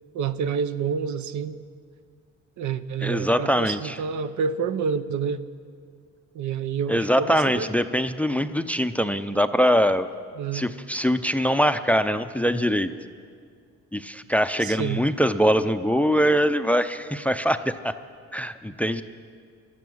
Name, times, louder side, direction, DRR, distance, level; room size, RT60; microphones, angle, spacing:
voice 1, 0.1-1.6 2.6-5.4 6.3-7.7 10.4-10.7 14.6-15.0, right 6 dB, 70° right, 12 dB, 0.7 m, -28 dB
voice 2, 3.0-4.0 6.9-10.1 10.5-12.9 13.9-17.9 18.3-19.0, equal, 5° left, 12 dB, 0.5 m, -23 dB
16.0 x 12.0 x 6.3 m, 2.1 s
cardioid pair, 90°, 30 cm